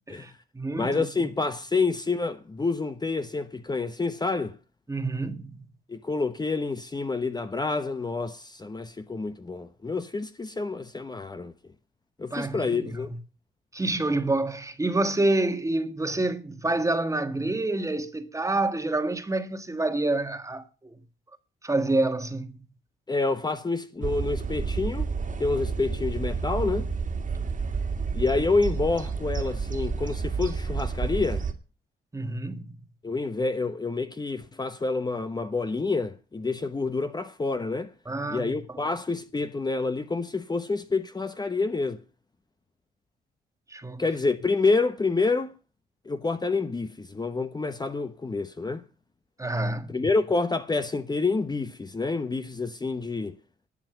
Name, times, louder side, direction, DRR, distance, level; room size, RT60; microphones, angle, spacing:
voice 1, 0.1-1.1 4.9-5.6 12.3-12.8 13.7-20.9 21.6-22.6 32.1-32.8 38.1-38.5 43.7-44.0 49.4-50.0, right 2 dB, 15° right, 1.6 m, -28 dB
voice 2, 0.8-4.6 5.9-11.5 12.2-13.1 23.1-25.1 25.4-26.9 28.1-31.4 33.0-37.9 38.3-42.0 44.0-45.5 46.1-48.8 49.9-53.4, left 3 dB, 20° left, 1.0 m, -28 dB
sound 1, 24.0-31.5, right 5 dB, 40° right, 2.0 m, -30 dB
12.0 x 7.7 x 8.0 m
cardioid pair, 90°, 20 cm